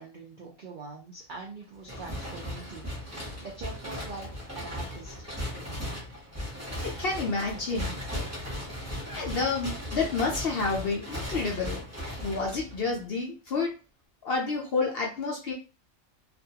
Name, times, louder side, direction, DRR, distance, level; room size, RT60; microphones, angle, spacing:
voice 1, 0.0-5.1, right 3 dB, 65° right, -2 dB, 0.4 m, -43 dB
sound 1, 1.8-13.0, equal, 15° right, 0.7 m, -37 dB
voice 2, 6.8-8.0 9.1-11.8 12.2-13.7 14.2-15.5, left 4 dB, 60° left, 0 dB, 0.6 m, -29 dB
2.4 x 2.2 x 2.7 m, 0.31 s
omnidirectional pair, 1.4 m